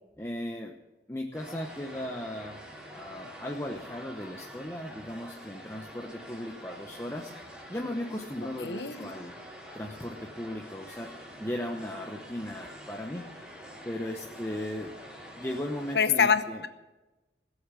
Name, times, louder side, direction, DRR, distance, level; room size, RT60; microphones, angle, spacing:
voice 1, 0.2-0.8 1.1-2.6 2.9-7.3 7.7-9.3 9.7-11.1 11.4-13.3 13.8-14.9 15.4-16.6, left 1 dB, 15° left, 1 dB, 0.9 m, -37 dB
sound 1, 1.3-16.0, equal, 5° right, 3.0 m, -46 dB
voice 2, 8.6-9.1 15.9-16.7, left 6 dB, 75° left, 11 dB, 1.0 m, -25 dB
19.0 x 8.1 x 8.3 m, 1.1 s
head